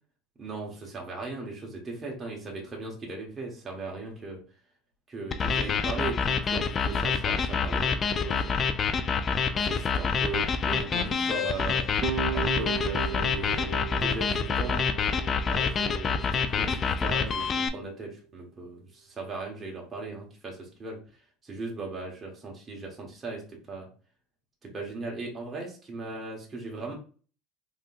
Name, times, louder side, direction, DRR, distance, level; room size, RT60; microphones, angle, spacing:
voice 1, 0.4-4.4 5.1-8.6 9.5-11.9 12.3-14.9 15.5-21.0 21.4-23.9 24.6-26.9, right 3 dB, 25° right, -1 dB, 1.2 m, -38 dB
sound 1, 5.3-17.7, left 5 dB, 35° left, 0.4 m, -27 dB
sound 2, 12.0-17.1, right 9 dB, 60° right, 0.3 m, -37 dB
3.5 x 2.9 x 2.4 m, 0.39 s
hypercardioid pair, 85°, 0 cm